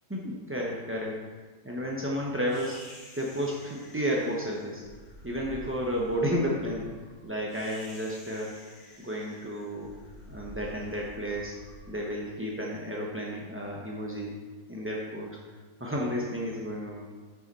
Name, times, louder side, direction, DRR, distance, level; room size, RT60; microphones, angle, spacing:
voice 1, 0.1-1.2 1.6-4.8 5.2-6.9 7.2-8.5 9.0-9.9 10.3-11.6 11.9-14.4 14.7-15.4 15.8-17.0, equal, 20° right, -3 dB, 0.4 m, -32 dB
sound 1, 2.5-12.8, left 1 dB, 60° left, 1.7 m, -49 dB
9.5 x 6.3 x 4.1 m, 1.4 s
omnidirectional pair, 1.9 m